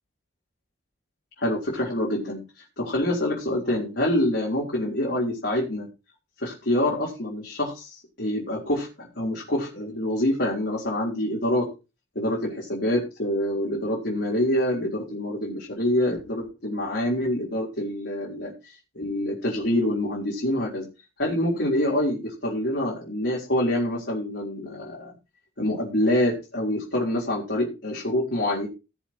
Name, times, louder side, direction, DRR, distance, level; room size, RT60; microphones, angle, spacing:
voice 1, 1.4-2.4 2.8-5.9 6.4-11.7 12.2-20.9 21.2-25.1 25.6-28.7, left 1 dB, 60° left, -4 dB, 3.8 m, -26 dB
19.5 x 7.1 x 2.9 m, 0.28 s
head